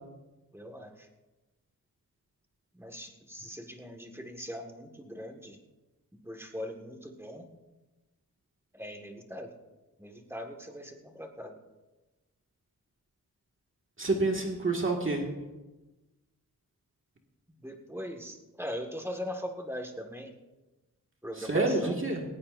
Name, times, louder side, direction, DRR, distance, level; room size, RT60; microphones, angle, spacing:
voice 1, 0.5-1.1 2.7-5.6 6.2-7.5 8.7-9.5 10.0-11.6 17.6-20.3 21.2-22.0, equal, 5° right, 3 dB, 1.7 m, -41 dB
voice 2, 14.0-15.3 21.4-22.2, right 2 dB, 35° right, 0 dB, 1.9 m, -28 dB
19.0 x 16.5 x 2.6 m, 1.1 s
wide cardioid pair, 110°, 36 cm